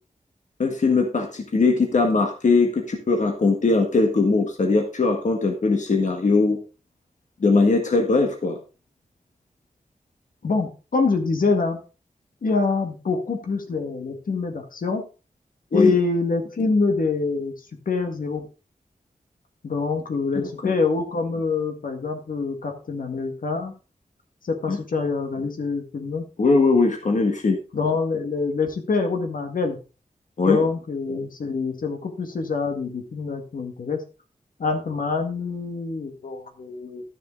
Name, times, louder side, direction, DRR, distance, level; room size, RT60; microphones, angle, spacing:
voice 1, 0.6-6.6 7.4-8.6 15.7-15.9 20.3-20.7 24.7-24.8 26.4-27.6 30.4-30.6, left 3 dB, 60° left, 3 dB, 1.6 m, -20 dB
voice 2, 10.4-11.8 12.4-15.1 15.7-17.5 17.9-18.4 19.6-23.7 24.4-26.3 27.7-29.8 30.4-34.0 34.6-37.0, left 4 dB, 75° left, 4 dB, 1.8 m, -25 dB
12.5 x 6.7 x 3.8 m, 0.34 s
wide cardioid pair, 125°, 14 cm